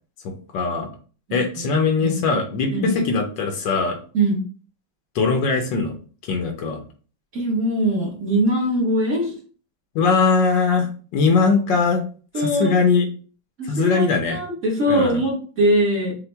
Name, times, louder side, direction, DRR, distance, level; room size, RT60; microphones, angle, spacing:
voice 1, 0.5-0.9 1.3-4.0 5.1-5.9 6.3-6.8 9.9-10.9 11.1-12.0 12.4-13.0 13.7-14.4 14.9-15.2, left 4 dB, 75° left, 4 dB, 1.5 m, -20 dB
voice 2, 4.1-4.4 7.3-9.4 12.3-12.8 13.6-16.1, right 1 dB, 40° right, -3 dB, 1.6 m, -22 dB
5.7 x 2.4 x 3.4 m, 0.40 s
omnidirectional pair, 2.1 m